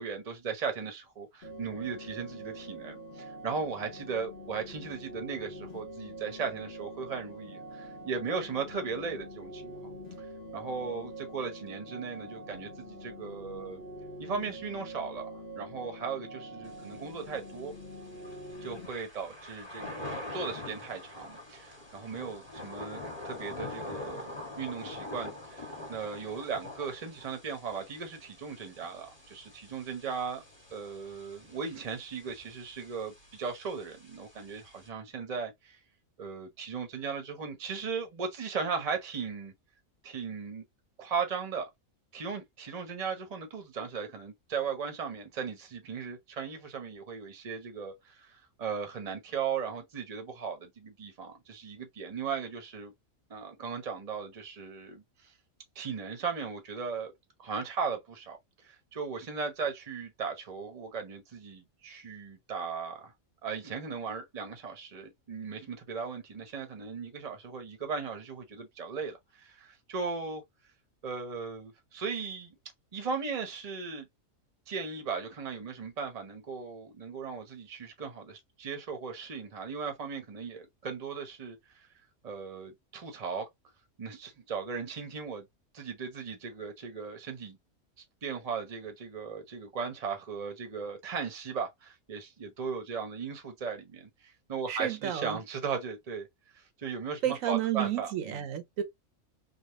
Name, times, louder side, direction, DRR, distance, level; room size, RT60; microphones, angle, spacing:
voice 1, 0.0-10.3 10.5-13.8 14.2-17.7 18.6-24.3 24.6-30.4 30.7-35.8 36.2-39.5 40.0-40.6 41.0-41.7 42.1-52.9 53.3-55.3 55.7-57.1 57.4-58.4 58.6-63.1 63.4-70.4 71.0-72.5 72.9-74.1 74.7-81.8 82.2-83.5 84.0-85.5 85.7-87.6 88.2-96.3 96.5-98.4, right 5 dB, 35° right, 0.9 m, -37 dB
sound 1, 1.4-18.9, right 1 dB, 60° left, 1.2 m, -45 dB
Thunder / Rain, 16.7-34.9, left 2 dB, 20° left, 1.5 m, -45 dB
voice 2, 94.7-95.4 97.2-98.8, right 11 dB, 80° right, 1.1 m, -31 dB
3.5 x 2.3 x 2.9 m
omnidirectional pair, 1.4 m